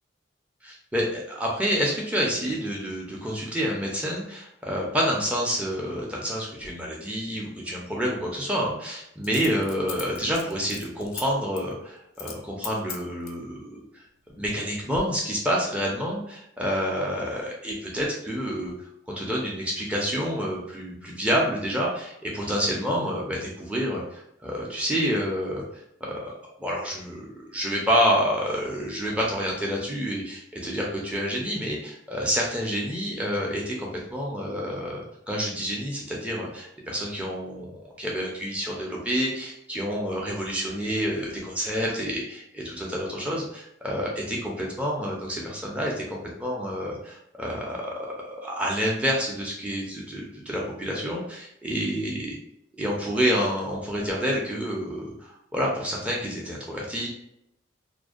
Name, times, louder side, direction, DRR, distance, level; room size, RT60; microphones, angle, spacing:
voice 1, 0.6-13.8 14.3-18.7 19.1-25.8 26.1-26.3 26.6-52.3 52.8-57.1, equal, 5° right, -3 dB, 0.4 m, -28 dB
Coin (dropping), 6.6-6.7 9.2-11.2 11.6-11.7 12.1-12.4 12.6-13.4 14.1-14.6 14.9-15.0, left 7 dB, 85° left, 0.4 m, -39 dB
2.5 x 2.1 x 2.4 m, 0.79 s
head